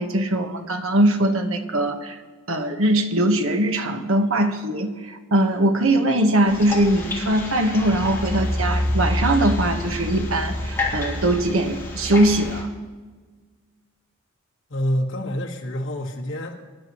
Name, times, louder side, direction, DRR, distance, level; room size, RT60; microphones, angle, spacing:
voice 1, 0.0-2.2 2.5-12.7, right 1 dB, 75° right, 5 dB, 1.3 m, -21 dB
sound 1, 6.5-12.6, left 1 dB, 15° left, 2.9 m, -27 dB
voice 2, 14.7-16.6, equal, 65° left, -2 dB, 1.8 m, -27 dB
24.0 x 11.0 x 3.1 m, 1.4 s
head